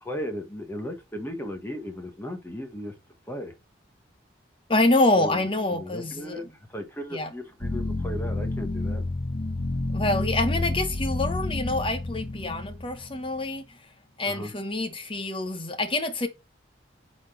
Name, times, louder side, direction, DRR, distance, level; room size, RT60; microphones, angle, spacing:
voice 1, 0.0-2.9 3.3-3.5 5.1-6.4 6.7-9.0 14.2-14.5, equal, 10° left, 1.3 m, -36 dB
voice 2, 4.7-6.4 7.1-7.3 9.9-13.6 14.2-16.3, left 2 dB, 25° left, 1.0 m, -26 dB
sound 1, 7.6-13.4, left 2 dB, 55° left, 2.1 m, -30 dB
8.2 x 4.4 x 4.4 m
head